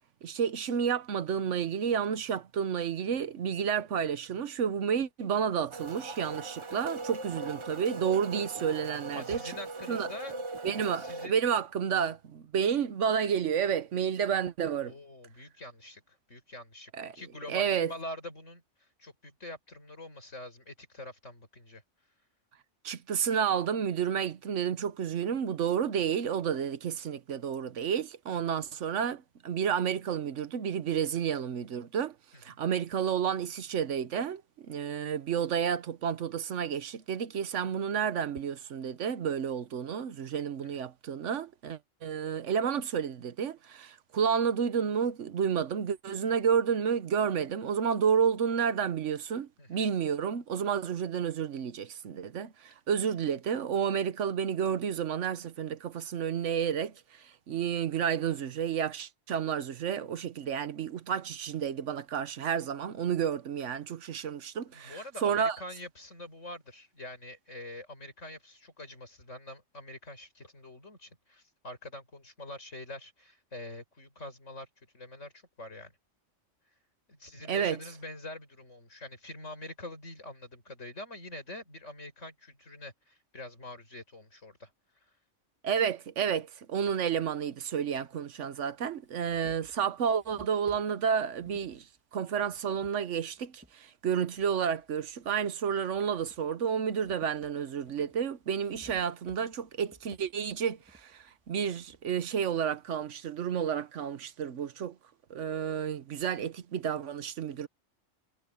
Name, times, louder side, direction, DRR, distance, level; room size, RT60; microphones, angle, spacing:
voice 1, 0.2-9.4 9.9-10.1 10.6-14.9 16.9-17.2 17.5-17.9 22.8-32.1 32.4-65.6 77.5-77.8 85.6-91.8 92.1-105.0 105.3-107.7, right 7 dB, 80° right, 1.2 m, -31 dB
sound 1, 5.7-11.3, right 3 dB, 30° right, 0.7 m, -40 dB
voice 2, 9.1-10.4 10.8-11.3 14.8-18.6 19.0-21.8 32.3-32.4 40.6-40.9 49.6-49.8 64.7-74.7 74.9-75.9 77.1-84.7, left 1 dB, 85° left, 6.3 m, -45 dB
sound 2, 86.9-87.0 88.0-88.1 88.6-93.8 94.3-95.5 95.9-102.1, equal, 10° right, 2.7 m, -59 dB
omnidirectional pair, 1.2 m